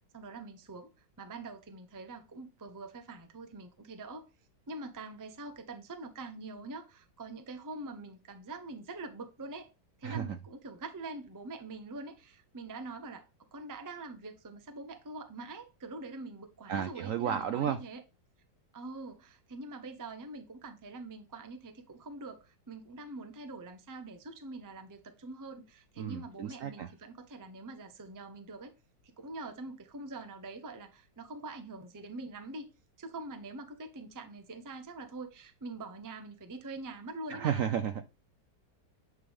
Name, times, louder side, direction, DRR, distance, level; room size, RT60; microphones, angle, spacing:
voice 1, 0.1-4.3 4.7-9.7 10.0-13.3 13.5-18.0 18.7-28.7 29.0-32.7 33.0-37.6, right 2 dB, 25° right, 0.4 m, -44 dB
voice 2, 10.0-10.4 16.7-17.8 26.0-26.9 37.3-38.1, right 9 dB, 75° right, 0.7 m, -33 dB
9.5 x 3.3 x 3.5 m
omnidirectional pair, 1.9 m